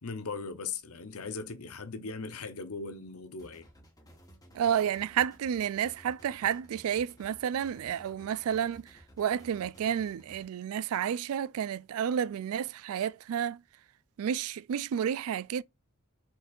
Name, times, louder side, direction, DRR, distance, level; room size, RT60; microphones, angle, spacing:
voice 1, 0.0-3.7, left 4 dB, 75° left, 0.9 m, -39 dB
sound 1, 3.4-10.4, equal, 15° left, 1.2 m, -56 dB
voice 2, 4.5-13.6 14.2-15.6, right 9 dB, 70° right, 0.3 m, -31 dB
4.5 x 4.4 x 2.4 m
head